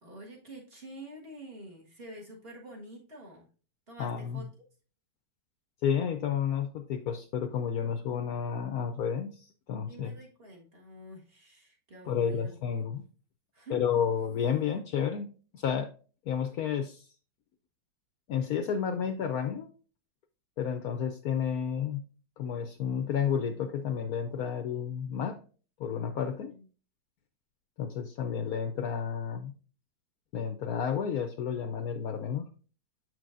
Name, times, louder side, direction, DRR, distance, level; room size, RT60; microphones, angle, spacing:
voice 1, 0.0-3.5 3.9-4.5 9.9-12.5 13.5-13.8 26.5-26.6, right 1 dB, 35° right, -1 dB, 1.7 m, -47 dB
voice 2, 4.0-4.5 5.8-10.1 12.1-13.0 13.7-15.9 16.3-17.0 18.3-19.7 20.6-22.0 22.4-25.4 25.8-26.5 27.8-29.5 30.3-32.5, left 7 dB, 65° left, 7 dB, 1.0 m, -31 dB
7.1 x 6.1 x 2.5 m, 0.36 s
omnidirectional pair, 1.9 m